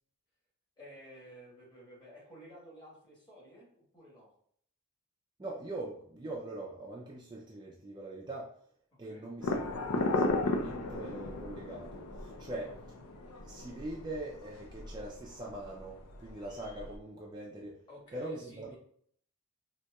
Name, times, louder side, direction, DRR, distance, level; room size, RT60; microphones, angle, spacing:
voice 1, 0.8-4.3 8.9-9.3 12.6-12.8 17.9-18.8, equal, 20° left, -4 dB, 1.2 m, -53 dB
voice 2, 5.4-8.5 9.0-12.7 13.4-17.8 18.1-18.8, right 2 dB, 20° right, -3 dB, 0.3 m, -42 dB
sound 1, 9.4-17.0, left 2 dB, 75° left, 0.5 m, -36 dB
4.0 x 2.7 x 2.2 m, 0.62 s
head